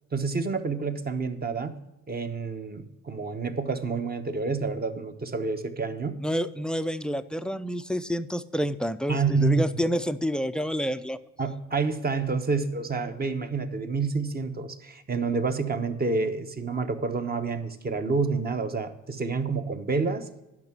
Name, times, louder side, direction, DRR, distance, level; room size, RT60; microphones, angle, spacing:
voice 1, 0.1-1.8 2.1-6.2 9.1-9.8 11.4-20.3, right 4 dB, 30° right, 8 dB, 1.0 m, -28 dB
voice 2, 6.2-11.2, equal, 5° left, 12 dB, 0.4 m, -28 dB
10.5 x 5.8 x 6.0 m, 1.0 s
cardioid pair, 90°, 30 cm